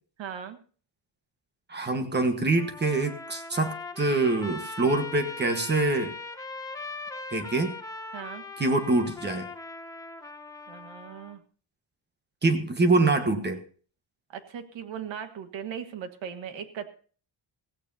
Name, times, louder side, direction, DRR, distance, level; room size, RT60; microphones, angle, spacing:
voice 1, 0.2-0.6 8.1-8.5 10.7-11.4 14.3-16.9, right 8 dB, 75° right, 9 dB, 1.6 m, -38 dB
voice 2, 1.7-6.1 7.3-7.7 8.6-9.5 12.4-13.6, right 2 dB, 20° right, 8 dB, 1.3 m, -25 dB
Trumpet, 2.6-11.4, left 3 dB, 5° left, 0.9 m, -40 dB
16.0 x 16.0 x 2.7 m, 0.42 s
wide cardioid pair, 170°, 46 cm